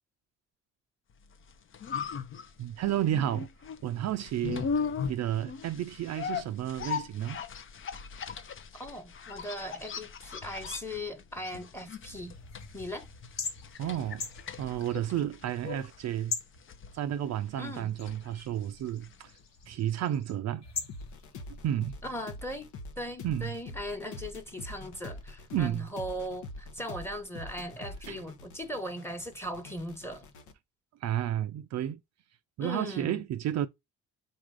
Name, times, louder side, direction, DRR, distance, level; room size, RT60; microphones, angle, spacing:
sound 1, 1.3-19.4 19.6-19.7, left 6 dB, 45° left, 0.6 m, -39 dB
voice 1, 2.6-3.5 3.8-4.7 5.1-7.4 13.8-14.3 14.6-16.4 16.9-19.3 19.7-20.7 21.6-21.9 23.2-23.5 25.5-25.9 28.1-28.2 31.0-32.0 32.6-33.7, right 11 dB, 60° right, 0.4 m, -31 dB
voice 2, 8.7-12.4 12.7-13.1 17.6-17.9 22.0-22.7 23.0-30.3 32.6-33.2, equal, 10° left, 1.2 m, -38 dB
sound 2, 12.1-22.8, left 5 dB, 60° left, 1.1 m, -43 dB
sound 3, 20.9-30.5, left 2 dB, 80° left, 0.8 m, -45 dB
4.1 x 2.5 x 4.7 m
cardioid pair, 90°, 30 cm